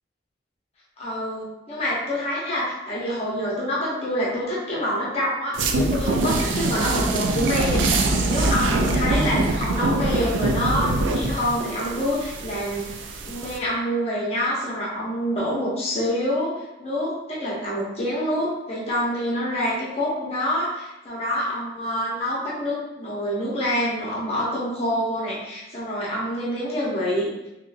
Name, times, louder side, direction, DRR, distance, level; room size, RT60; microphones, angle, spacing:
voice 1, 1.0-13.0 13.2-16.5 16.8-27.3, equal, 35° left, -6 dB, 0.8 m, -26 dB
sound 1, 5.5-13.6, right 2 dB, 90° right, 0.4 m, -24 dB
3.7 x 2.9 x 2.5 m, 0.92 s
head